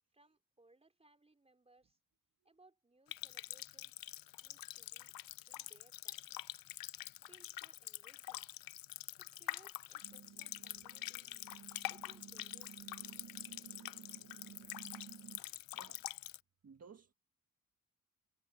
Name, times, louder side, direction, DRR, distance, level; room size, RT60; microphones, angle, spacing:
voice 1, 0.1-2.0 2.4-4.1 4.4-5.2 5.5-6.4 7.2-8.5 9.2-11.3 11.9-13.0, right 2 dB, 20° right, 4.6 m, -67 dB
Water tap faucet, 3.1-16.4, left 14 dB, 85° left, 0.5 m, -46 dB
sound 1, 10.0-15.4, right 8 dB, 65° right, 1.0 m, -55 dB
voice 2, 15.3-16.0 16.6-17.1, right 5 dB, 50° right, 1.7 m, -59 dB
cardioid pair, 100°, 33 cm